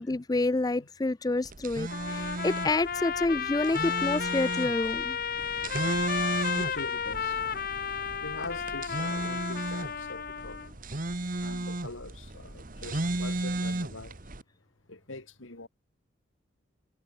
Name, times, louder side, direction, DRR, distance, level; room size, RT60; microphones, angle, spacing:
voice 1, 0.0-5.2, left 2 dB, 20° left, 0.4 m, -28 dB
sound 1, 1.5-14.4, right 2 dB, 45° right, 1.5 m, -35 dB
Trumpet, 1.9-10.7, left 7 dB, 50° left, 0.9 m, -33 dB
voice 2, 6.5-7.4 8.2-10.6 11.4-14.2 14.9-15.7, left 2 dB, 90° left, 3.1 m, -43 dB
head